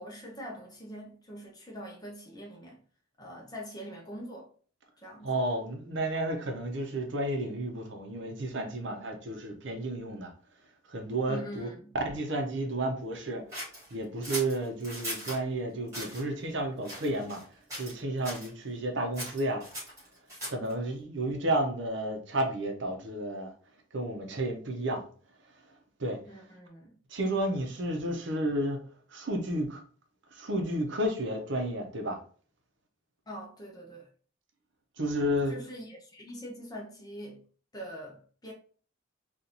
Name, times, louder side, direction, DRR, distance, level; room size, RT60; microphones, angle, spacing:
voice 1, 0.0-2.8 3.2-4.5 5.0-5.3 11.3-11.9 26.3-26.9 33.3-34.1 35.5-37.4 37.7-38.5, equal, 20° left, 0.7 m, -43 dB
voice 2, 5.2-10.3 10.9-11.7 12.0-13.4 13.9-17.4 17.8-19.6 20.5-23.5 23.9-25.0 26.0-26.2 27.1-28.8 29.1-29.8 30.3-32.2 35.0-35.5, right 1 dB, 60° right, 0.7 m, -31 dB
sound 1, 13.5-15.4 15.9-16.2 16.8-17.4 17.7-18.0 18.2-18.5 19.1-20.7, equal, 15° right, 1.8 m, -39 dB
3.9 x 2.5 x 2.8 m
head